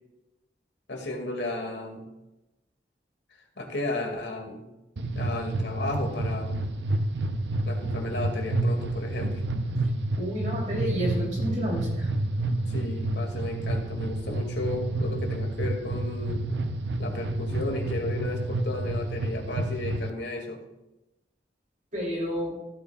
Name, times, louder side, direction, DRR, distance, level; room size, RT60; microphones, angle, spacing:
voice 1, 0.9-2.1 3.6-4.7 5.1-6.6 7.7-9.4 12.7-16.5 17.0-20.6, left 2 dB, 85° left, 2 dB, 2.2 m, -34 dB
sound 1, 5.0-20.1, right 2 dB, 80° right, 0.7 m, -29 dB
voice 2, 10.2-12.1 21.9-22.6, equal, 45° right, -4 dB, 3.1 m, -30 dB
15.5 x 8.8 x 2.4 m, 0.95 s
head